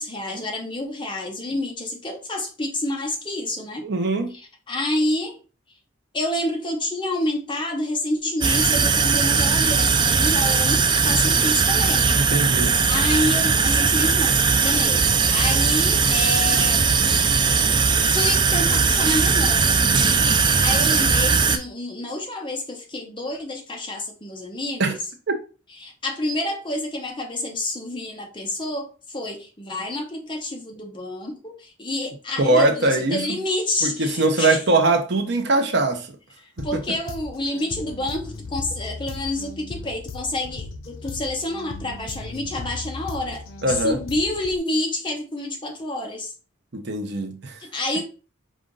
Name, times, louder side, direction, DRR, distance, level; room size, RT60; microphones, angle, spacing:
voice 1, 0.0-3.9 4.3-5.4 6.1-12.1 12.5-16.9 18.0-19.8 20.4-25.0 25.8-34.6 36.4-46.3 47.6-48.0, left 1 dB, 25° left, 0.8 m, -28 dB
voice 2, 3.8-4.3 12.1-12.7 24.8-25.0 32.4-33.2 33.8-36.1 36.6-36.7 43.6-44.0 46.7-47.6, right 2 dB, 55° right, 0.7 m, -21 dB
sound 1, 8.4-21.6, right 5 dB, 20° right, 0.3 m, -19 dB
sound 2, 36.6-44.6, left 3 dB, 80° left, 0.8 m, -37 dB
5.1 x 2.5 x 3.8 m
head